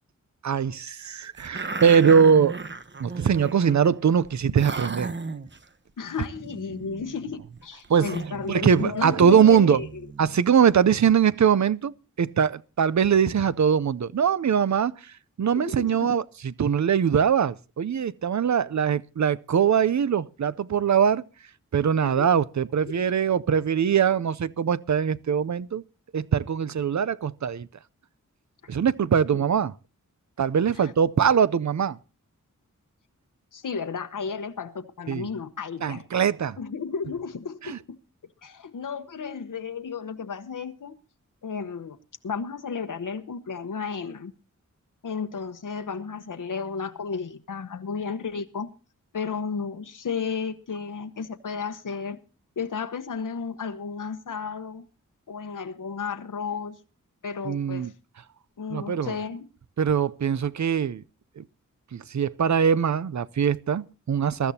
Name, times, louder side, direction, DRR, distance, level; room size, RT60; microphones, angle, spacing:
voice 1, 0.4-2.6 3.0-5.1 7.9-8.2 8.5-9.8 10.2-21.2 21.7-25.8 26.1-27.7 28.7-29.7 30.4-32.0 35.1-35.3 35.8-36.6 37.6-37.8 57.4-57.9 58.7-59.1 59.8-61.0 61.4-61.5 61.9-64.5, right 7 dB, 65° right, 0.6 m, -22 dB
sound 1, 1.3-3.9 4.2-4.3 4.6-5.6 6.2-10.4, right 3 dB, 35° right, 1.0 m, -36 dB
voice 2, 6.0-9.9 15.5-16.1 22.0-22.3 22.9-23.1 29.3-29.4 30.8-30.9 33.5-36.0 36.6-38.0 38.4-41.0 41.4-42.0 42.2-44.3 45.0-48.7 49.1-52.2 52.6-54.8 55.3-56.8 57.2-57.9 58.6-59.5, left 5 dB, 85° left, 1.0 m, -33 dB
22.5 x 13.5 x 2.8 m
wide cardioid pair, 95°, 31 cm